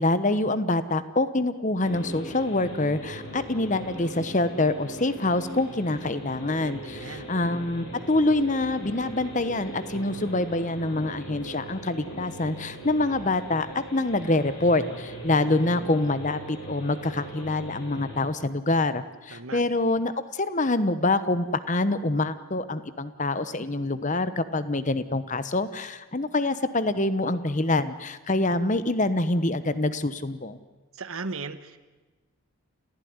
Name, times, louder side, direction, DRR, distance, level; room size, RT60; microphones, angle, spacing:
voice 1, 0.0-30.6, left 2 dB, 35° left, 13 dB, 1.0 m, -26 dB
sound 1, 1.8-18.2, right 1 dB, 65° left, 7.9 m, -40 dB
voice 2, 6.6-7.3 19.3-19.6 30.9-31.8, right 3 dB, 70° right, 11 dB, 1.3 m, -37 dB
28.5 x 15.5 x 9.6 m, 1.2 s
head